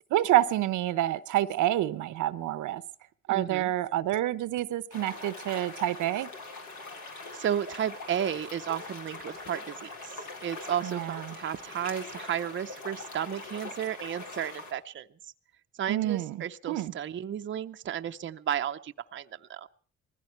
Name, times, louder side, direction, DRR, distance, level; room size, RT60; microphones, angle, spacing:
voice 1, 0.1-2.8 3.3-6.3 10.8-11.3 15.9-16.9, right 14 dB, 80° right, 0.8 m, -28 dB
voice 2, 3.3-3.7 7.3-15.1 15.8-19.7, right 9 dB, 40° right, 0.7 m, -33 dB
sound 1, 4.9-14.7, left 3 dB, 75° left, 4.0 m, -42 dB
20.0 x 15.0 x 4.5 m
cardioid pair, 90°, 30 cm